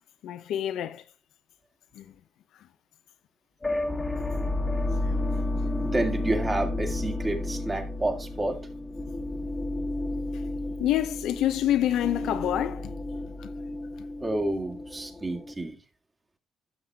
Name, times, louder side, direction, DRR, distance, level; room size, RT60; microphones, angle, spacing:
voice 1, 0.2-1.0 1.9-2.1 5.0-5.2 10.8-12.9 13.4-13.5, left 12 dB, 80° left, 0.8 m, -27 dB
sound 1, 3.6-15.5, left 2 dB, 20° left, 1.5 m, -32 dB
voice 2, 5.8-8.6 13.7-13.8 14.2-15.8, right 2 dB, 20° right, 2.2 m, -29 dB
12.5 x 6.2 x 3.6 m
cardioid pair, 90°, 0 cm